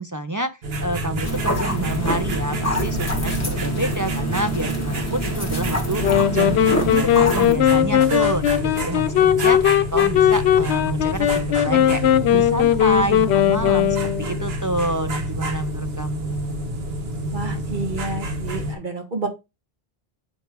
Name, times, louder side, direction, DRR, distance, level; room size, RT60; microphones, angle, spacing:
voice 1, 0.0-6.0 6.3-16.6, right 1 dB, 30° right, 0.3 m, -28 dB
sound 1, 0.6-18.7, right 1 dB, 70° right, 1.3 m, -28 dB
sound 2, 1.2-7.5, right 1 dB, 15° left, 1.3 m, -26 dB
sound 3, 6.0-14.5, left 10 dB, 85° left, 0.8 m, -18 dB
voice 2, 17.3-19.3, right 3 dB, 50° right, 1.5 m, -30 dB
7.9 x 3.4 x 4.5 m
omnidirectional pair, 1.1 m